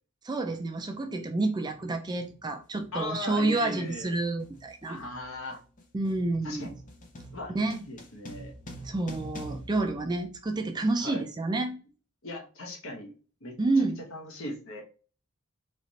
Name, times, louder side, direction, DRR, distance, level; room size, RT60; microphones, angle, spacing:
voice 1, 0.2-5.0 5.9-6.7 7.5-7.8 8.8-11.8 13.6-14.0, right 2 dB, 20° right, 0.4 m, -29 dB
sound 1, 0.6-0.7 1.6-1.9 2.2-10.7, equal, 35° left, 0.7 m, -46 dB
voice 2, 2.9-4.1 4.9-5.6 6.4-6.7 7.3-8.5 11.0-11.2 12.2-13.1 13.4-13.5 14.1-14.8, left 1 dB, 60° left, 1.0 m, -38 dB
3.2 x 2.4 x 3.9 m
head